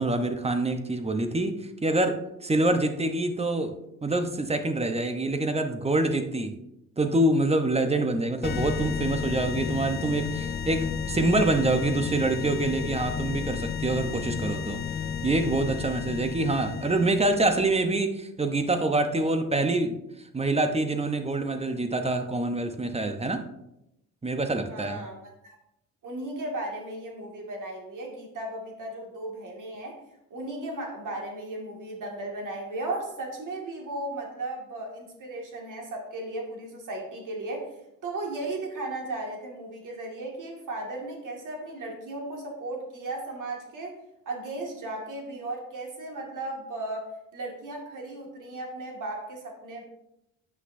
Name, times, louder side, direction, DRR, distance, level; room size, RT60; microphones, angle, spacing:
voice 1, 0.0-1.6 1.8-3.7 4.0-6.5 7.0-14.8 15.2-20.0 20.3-23.4 24.2-25.0, right 2 dB, 15° right, 8 dB, 0.8 m, -26 dB
sound 1, 8.4-17.8, left 6 dB, 30° left, 0.4 m, -32 dB
voice 2, 24.7-25.6 26.0-30.0 30.3-37.7 38.0-43.9 44.3-49.9, right 2 dB, 55° right, 0 dB, 2.0 m, -36 dB
8.1 x 5.7 x 2.6 m, 0.85 s
supercardioid pair, 65°, 36 cm